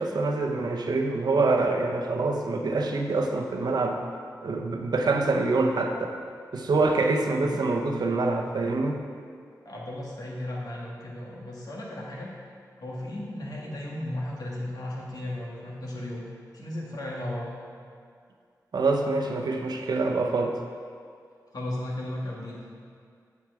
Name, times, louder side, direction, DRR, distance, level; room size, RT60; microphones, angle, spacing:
voice 1, 0.0-4.0 4.4-6.1 6.5-9.0 18.7-20.5, right 3 dB, 75° right, 3 dB, 0.8 m, -25 dB
voice 2, 7.3-7.6 9.6-12.3 12.8-16.3 16.5-17.5 21.5-22.7, left 1 dB, 65° left, -4 dB, 2.0 m, -35 dB
8.1 x 7.3 x 4.8 m, 2.2 s
cardioid pair, 65°, 7 cm